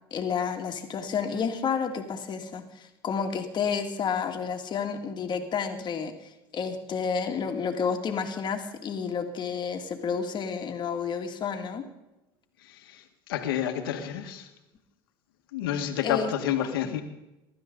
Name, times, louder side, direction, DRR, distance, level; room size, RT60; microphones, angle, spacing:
voice 1, 0.1-11.8 16.0-16.3, left 6 dB, 40° left, 4 dB, 2.3 m, -30 dB
voice 2, 13.3-14.5 15.5-17.0, left 9 dB, 85° left, 6 dB, 1.9 m, -29 dB
23.0 x 12.5 x 4.0 m, 0.97 s
supercardioid pair, 95°, 12 cm